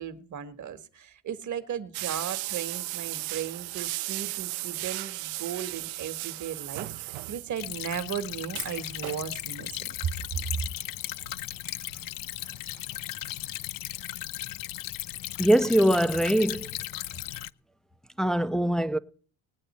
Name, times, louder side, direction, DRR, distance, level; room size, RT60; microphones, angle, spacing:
voice 1, 0.0-10.1, right 8 dB, 40° right, 1.4 m, -36 dB
sound 1, 1.9-7.8 8.1-8.2 8.4-9.3 10.4-10.6 11.2-12.5 12.8-12.9 13.3-13.4, right 19 dB, 85° right, 0.6 m, -36 dB
Stream / Trickle dribble, 7.6-17.5, left 15 dB, 50° left, 0.5 m, -36 dB
voice 2, 15.4-16.7 18.2-19.0, equal, ahead, 0.6 m, -22 dB
19.5 x 8.9 x 4.2 m
cardioid pair, 120°, 45 cm